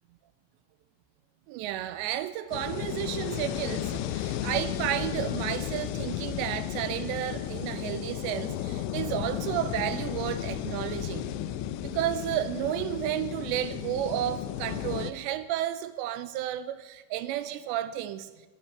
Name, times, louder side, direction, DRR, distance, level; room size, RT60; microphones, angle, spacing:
voice 1, 1.5-11.3 11.8-18.3, right 12 dB, 80° right, 2.8 m, -32 dB
sound 1, 2.5-15.1, left 11 dB, 90° left, 3.0 m, -34 dB
20.5 x 11.0 x 4.6 m
omnidirectional pair, 5.2 m